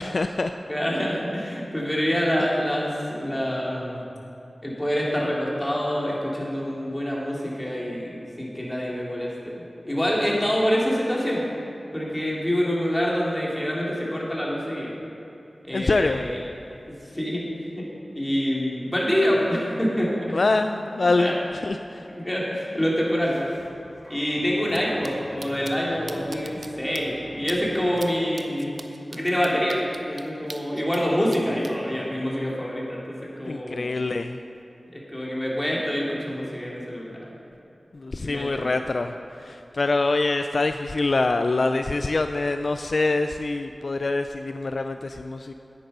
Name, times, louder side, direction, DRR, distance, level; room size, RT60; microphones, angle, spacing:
voice 1, 0.0-0.5 15.7-16.3 20.3-21.3 21.6-22.1 33.4-34.4 37.9-45.5, left 3 dB, 65° left, 7 dB, 0.3 m, -25 dB
voice 2, 0.7-4.0 4.6-11.4 11.9-15.0 15.6-16.4 17.1-17.4 17.7-17.9 18.1-20.3 21.2-21.3 22.2-23.4 24.1-28.7 29.1-33.0 33.4-33.9 34.9-37.3 38.2-38.7, equal, 15° left, -5 dB, 2.6 m, -26 dB
sound 1, 23.2-28.2, equal, 10° right, 2.0 m, -44 dB
sound 2, 24.7-24.8 25.0-25.1 25.4-25.7 26.1-26.7 26.9-27.0 27.5-27.6 28.0-28.1 28.4-31.0 31.3-31.7, right 3 dB, 60° right, 0.6 m, -40 dB
9.2 x 9.1 x 5.5 m, 2.9 s
wide cardioid pair, 70°, 0 cm